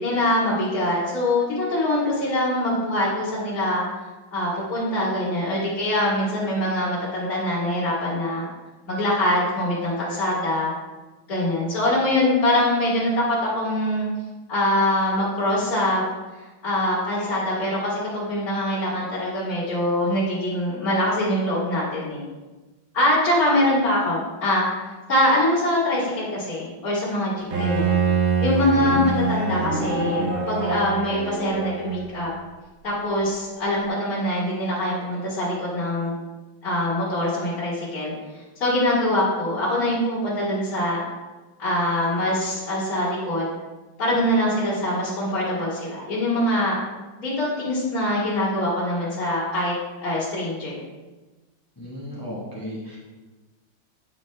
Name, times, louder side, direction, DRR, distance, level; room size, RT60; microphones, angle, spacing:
voice 1, 0.0-3.8 4.3-8.4 8.9-10.7 11.3-14.1 14.5-16.1 16.4-22.2 22.9-24.6 25.1-27.9 28.4-32.3 32.8-36.1 36.6-38.1 38.6-41.0 41.6-43.5 44.0-46.8 47.2-49.7 50.0-50.8, left 1 dB, 45° left, -9 dB, 2.1 m, -23 dB
Bowed string instrument, 27.5-32.3, right 4 dB, 90° right, 2.0 m, -25 dB
voice 2, 28.7-29.1 51.8-53.0, equal, 25° left, -6 dB, 0.5 m, -33 dB
8.9 x 4.6 x 3.2 m, 1.2 s
omnidirectional pair, 2.3 m